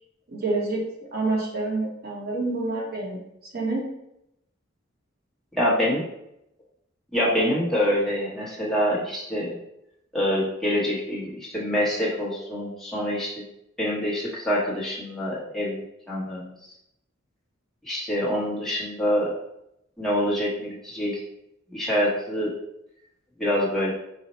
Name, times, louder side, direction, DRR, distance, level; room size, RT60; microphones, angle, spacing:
voice 1, 0.3-0.8 1.1-3.2 3.5-3.9, right 2 dB, 50° right, -2 dB, 0.9 m, -27 dB
voice 2, 5.5-6.0 7.1-9.5 10.1-13.3 13.8-16.5 17.8-19.3 20.0-21.2 21.7-22.5 23.4-23.9, equal, ahead, -7 dB, 0.9 m, -25 dB
4.2 x 2.1 x 4.0 m, 0.80 s
head